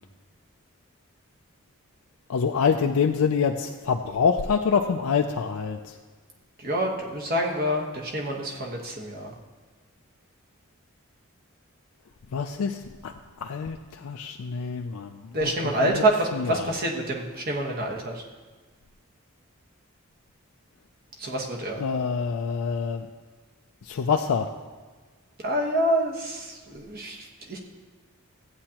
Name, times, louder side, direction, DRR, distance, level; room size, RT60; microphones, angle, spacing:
voice 1, 2.3-5.8 12.3-12.8 13.0-13.1 13.4-15.1 15.4-15.5 15.8-16.0 16.3-16.7 21.8-23.1 23.9-24.5, left 6 dB, 80° left, 4 dB, 0.4 m, -26 dB
voice 2, 6.6-9.3 15.3-18.2 21.2-21.8 25.4-27.6, right 1 dB, 40° right, 0 dB, 1.2 m, -27 dB
14.5 x 8.7 x 2.9 m, 1.4 s
head